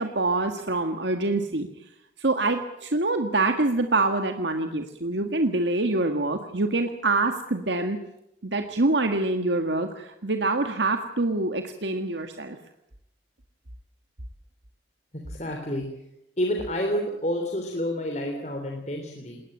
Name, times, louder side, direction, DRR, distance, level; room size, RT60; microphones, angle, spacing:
voice 1, 0.0-1.7 2.2-8.0 8.4-12.6, right 2 dB, 85° right, 6 dB, 1.7 m, -25 dB
voice 2, 15.3-15.8 16.4-19.4, equal, 40° left, 2 dB, 3.4 m, -29 dB
20.5 x 19.5 x 8.9 m, 0.83 s
head